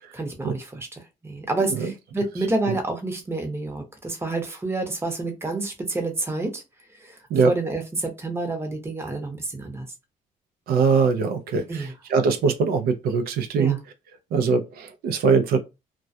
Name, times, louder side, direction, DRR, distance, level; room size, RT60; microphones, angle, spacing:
voice 1, 0.1-0.9 1.2-6.6 7.0-7.2 7.4-9.9 11.7-11.9 13.6-13.8, right 2 dB, 15° right, 0.8 m, -28 dB
voice 2, 10.7-13.8 14.3-15.6, right 5 dB, 85° right, 0.5 m, -22 dB
2.2 x 2.1 x 2.6 m
cardioid pair, 85°, 15 cm